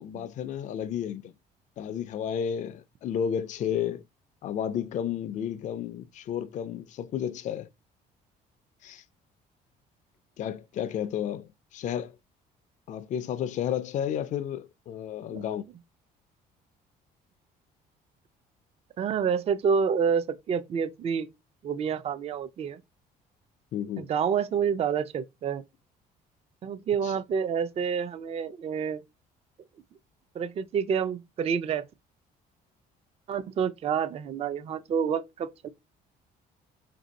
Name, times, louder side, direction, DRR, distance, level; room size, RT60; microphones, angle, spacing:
voice 1, 0.0-1.3 1.8-4.0 4.4-7.7 8.8-9.0 10.4-12.2 12.9-15.7 23.7-24.1 27.0-27.1, left 9 dB, 45° left, 0.4 m, -32 dB
voice 2, 19.0-21.3 21.6-22.8 24.0-25.6 26.6-29.0 30.3-31.8 33.3-35.7, right 7 dB, 35° right, 0.4 m, -28 dB
3.3 x 2.6 x 4.0 m
cardioid pair, 110°, 17 cm